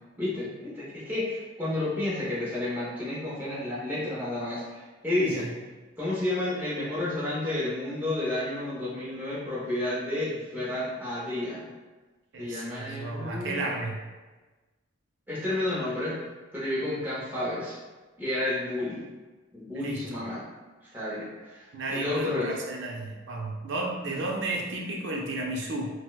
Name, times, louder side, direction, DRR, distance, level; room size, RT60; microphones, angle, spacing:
voice 1, 0.2-5.5 6.0-11.7 12.4-13.7 15.3-16.2 16.5-17.8 18.2-19.0 19.5-20.4 20.9-22.5 24.0-24.2, left 1 dB, 10° right, -9 dB, 0.6 m, -31 dB
voice 2, 5.2-5.5 12.3-14.0 19.7-20.3 21.7-25.9, right 2 dB, 60° right, -1 dB, 0.5 m, -33 dB
4.1 x 2.1 x 2.3 m, 1.2 s
head